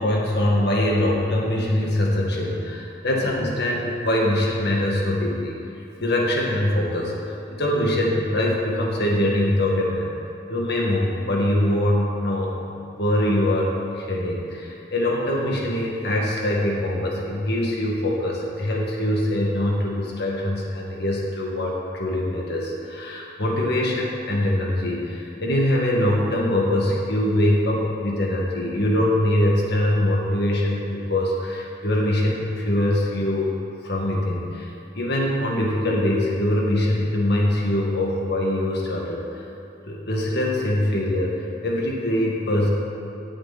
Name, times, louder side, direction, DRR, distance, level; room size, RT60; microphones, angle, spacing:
voice 1, 0.0-5.5 6.0-10.1 10.5-12.5 13.0-33.5 33.8-34.7 34.9-39.4 39.9-41.3 41.6-42.7, left 1 dB, 60° left, -2 dB, 2.0 m, -23 dB
18.0 x 8.2 x 4.2 m, 2.9 s
head